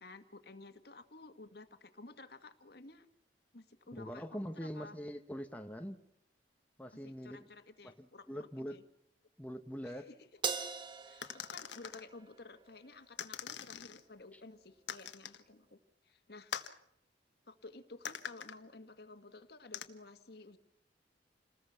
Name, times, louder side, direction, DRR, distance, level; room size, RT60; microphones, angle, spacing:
voice 1, 0.0-3.1 3.5-5.0 7.0-8.8 9.8-10.4 11.0-15.8 16.0-16.5 17.5-20.6, left 3 dB, 60° left, 9 dB, 1.8 m, -53 dB
voice 2, 3.9-6.0 6.8-7.5 7.8-8.8 9.4-10.1 14.3-14.4, equal, 10° left, 5 dB, 1.3 m, -43 dB
Crash cymbal, 10.4-13.0, right 5 dB, 25° right, 1.7 m, -41 dB
sound 1, 11.2-12.0 13.2-14.0 14.9-15.4 16.5-16.8 18.1-18.6 19.7-19.9, left 8 dB, 85° left, 1.5 m, -43 dB
28.5 x 20.5 x 5.9 m, 0.74 s
head